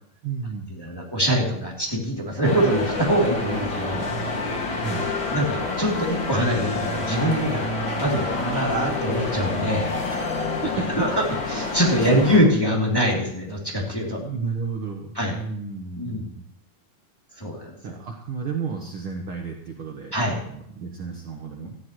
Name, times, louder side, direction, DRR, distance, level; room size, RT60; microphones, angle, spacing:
voice 1, 0.2-0.8 4.8-5.1 10.1-10.2 10.6-10.9 12.0-12.2 14.1-16.4 17.8-20.1 20.4-21.8, right 5 dB, 70° right, 1 dB, 1.2 m, -32 dB
voice 2, 0.8-4.1 5.3-7.7 8.0-9.9 11.0-11.2 11.5-14.2 15.1-15.4 16.0-16.3 17.4-17.7 20.1-20.4, equal, 5° left, -3 dB, 2.4 m, -23 dB
sound 1, 2.4-12.4, left 3 dB, 40° left, 2.2 m, -28 dB
18.0 x 13.5 x 3.1 m, 0.70 s
omnidirectional pair, 4.3 m